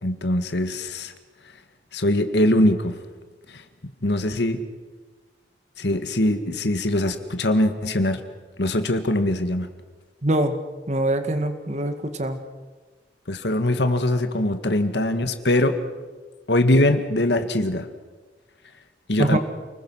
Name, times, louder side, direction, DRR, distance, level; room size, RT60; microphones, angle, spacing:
voice 1, 0.0-1.1 1.9-3.0 4.0-4.6 5.8-8.2 8.6-9.7 13.3-15.8 16.5-17.9 19.1-19.4, left 1 dB, 70° left, 8 dB, 1.8 m, -22 dB
voice 2, 10.2-10.6 10.9-12.4 19.2-19.4, right 1 dB, 40° right, 8 dB, 2.0 m, -23 dB
29.0 x 21.0 x 6.3 m, 1.3 s
head